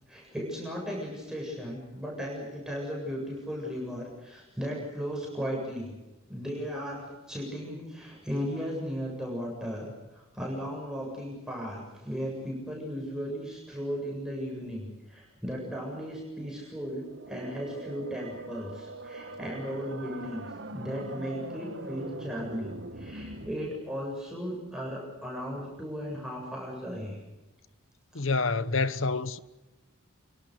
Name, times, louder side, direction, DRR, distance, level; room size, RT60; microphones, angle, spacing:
voice 1, 0.1-5.9 6.3-27.2, equal, 5° right, 7.6 m, -36 dB
sound 1, 17.0-23.5, right 2 dB, 60° right, 2.0 m, -42 dB
voice 2, 28.1-29.4, left 3 dB, 70° left, 1.2 m, -27 dB
29.0 x 24.5 x 6.7 m
head